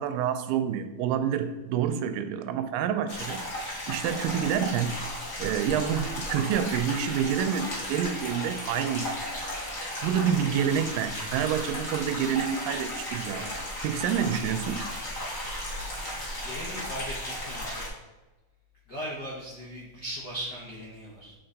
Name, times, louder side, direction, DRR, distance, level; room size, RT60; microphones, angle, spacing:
voice 1, 0.0-3.4 3.9-4.9 5.4-9.6 10.0-14.8, right 8 dB, 85° right, 10 dB, 2.2 m, -28 dB
sound 1, 3.1-17.9, left 1 dB, 40° left, 1.1 m, -35 dB
voice 2, 16.4-17.9 18.9-21.3, equal, 75° left, -5 dB, 0.9 m, -38 dB
7.7 x 4.1 x 4.0 m, 1.1 s
omnidirectional pair, 3.9 m